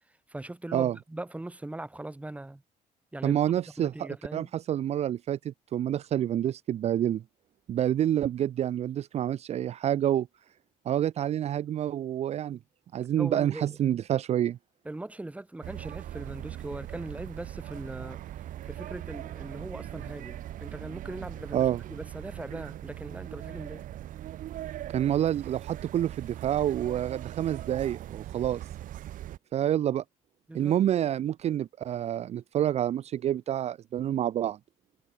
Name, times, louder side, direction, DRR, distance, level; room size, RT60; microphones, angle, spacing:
voice 1, 0.3-2.6 3.1-3.4 3.8-4.5 13.2-13.6 14.9-18.2 18.7-23.8 30.5-30.7, right 2 dB, 10° right, 2.0 m, -40 dB
voice 2, 3.2-7.2 7.7-10.3 10.9-12.6 12.9-14.6 21.5-21.8 24.9-28.6 29.5-30.0 30.5-34.6, right 11 dB, 50° right, 0.5 m, -28 dB
sound 1, 15.6-29.4, right 13 dB, 75° right, 1.9 m, -40 dB
cardioid pair, 120°, 14 cm